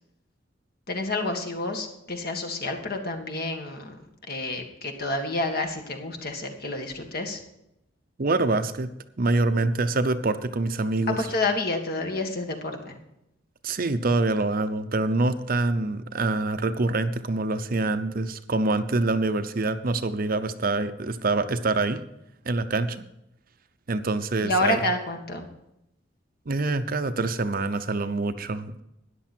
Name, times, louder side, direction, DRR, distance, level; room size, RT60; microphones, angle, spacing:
voice 1, 0.9-4.0 4.3-7.4 11.2-13.0 24.4-25.5, left 2 dB, 50° left, 4 dB, 1.8 m, -29 dB
voice 2, 8.2-8.9 9.2-11.2 13.6-22.0 22.5-23.0 23.9-24.8 26.5-28.8, right 2 dB, 50° right, 10 dB, 0.7 m, -25 dB
13.5 x 10.0 x 4.4 m, 0.84 s
head